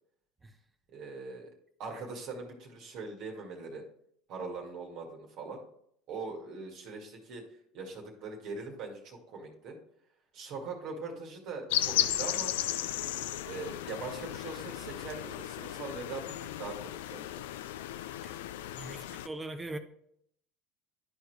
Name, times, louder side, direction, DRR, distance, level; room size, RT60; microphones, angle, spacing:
voice 1, 0.9-1.5 1.8-3.8 4.3-5.6 6.1-7.4 7.7-9.8 10.3-12.5 13.5-17.4, right 4 dB, 60° right, 2.0 m, -41 dB
sound 1, 11.7-19.3, left 13 dB, 80° left, 0.3 m, -35 dB
voice 2, 18.8-19.8, right 2 dB, 20° right, 0.9 m, -40 dB
11.5 x 4.6 x 3.3 m
hypercardioid pair, 75°, 0 cm